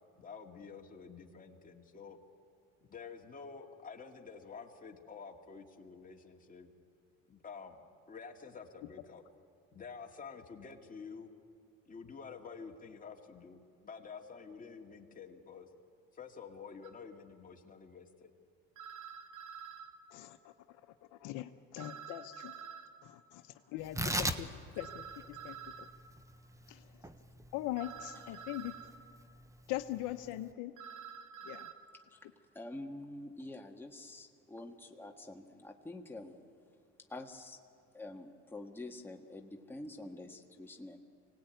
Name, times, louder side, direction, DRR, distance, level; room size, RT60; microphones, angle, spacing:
voice 1, 0.2-2.2 2.9-6.7 7.3-9.2 9.7-11.3 11.9-15.7 16.1-18.3, left 5 dB, 25° left, 1 dB, 2.4 m, -49 dB
sound 1, 16.8-16.9 18.8-19.9 21.8-22.9 24.8-25.9 27.8-28.9 30.8-31.7, right 8 dB, 70° right, 1.8 m, -48 dB
voice 2, 20.1-20.5 21.2-22.5 23.0-23.4 23.7-24.5 24.8-25.6 26.7-26.8 27.5-28.7 29.7-30.7 31.4-31.7, left 15 dB, 70° left, 7 dB, 1.0 m, -41 dB
Tearing, 23.8-30.5, right 1 dB, 10° right, 1.2 m, -41 dB
voice 3, 32.5-36.4 37.1-37.6 37.9-41.0, left 2 dB, 5° left, 2 dB, 1.7 m, -47 dB
24.5 x 18.0 x 9.3 m, 2.4 s
supercardioid pair, 100°, 31 cm